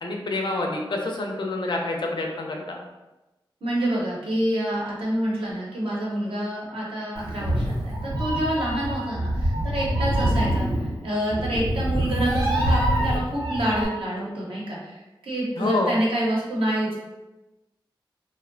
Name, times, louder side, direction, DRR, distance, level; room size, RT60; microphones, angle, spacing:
voice 1, 0.0-2.8 15.6-15.9, left 2 dB, 60° left, 1 dB, 0.4 m, -27 dB
voice 2, 3.6-16.9, right 1 dB, 85° right, -5 dB, 0.8 m, -27 dB
Meow, 7.2-13.9, equal, 45° right, 0.7 m, -25 dB
2.7 x 2.1 x 2.5 m, 1.1 s
wide cardioid pair, 85°, 9 cm